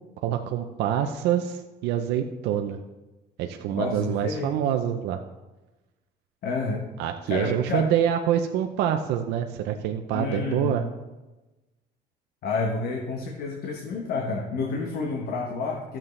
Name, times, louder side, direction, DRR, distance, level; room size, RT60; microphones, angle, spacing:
voice 1, 0.2-2.8 3.4-5.2 7.0-10.9, right 10 dB, 90° right, 5 dB, 0.6 m, -26 dB
voice 2, 3.7-4.6 6.4-6.9 7.3-7.9 10.1-10.8 12.4-16.0, left 4 dB, 65° left, 1 dB, 1.2 m, -29 dB
13.0 x 7.3 x 3.2 m, 1.1 s
cardioid pair, 110°, 17 cm